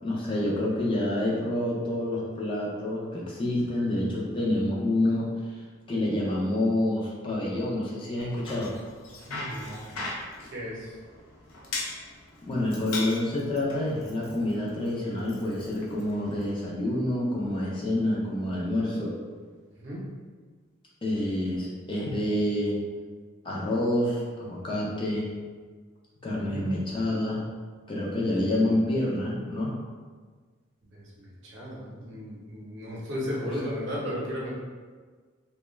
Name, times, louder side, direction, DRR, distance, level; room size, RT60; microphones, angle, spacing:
voice 1, 0.0-5.6 5.9-8.8 12.4-19.1 21.0-22.8 23.4-25.3 26.2-27.5 27.9-29.7 33.4-33.7, left 1 dB, 25° left, -5 dB, 0.4 m, -28 dB
Bicycle, 8.2-16.5, left 2 dB, 85° left, 0.5 m, -40 dB
voice 2, 9.3-9.8 10.5-10.9 19.8-20.0 26.5-26.7 30.9-34.5, equal, 60° right, -5 dB, 0.7 m, -35 dB
2.2 x 2.2 x 3.0 m, 1.5 s
head